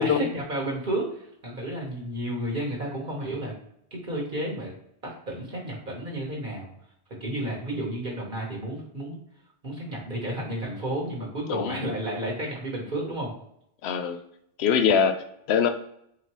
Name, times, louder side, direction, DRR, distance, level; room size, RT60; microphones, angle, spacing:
voice 1, 0.0-3.5 3.9-4.7 5.0-6.7 7.2-9.2 9.6-13.3, right 1 dB, 50° right, -1 dB, 1.2 m, -32 dB
voice 2, 11.5-11.8 13.8-14.2 14.6-15.2 15.5-15.7, left 7 dB, 75° left, 8 dB, 0.8 m, -22 dB
4.0 x 2.9 x 3.0 m, 0.74 s
omnidirectional pair, 1.1 m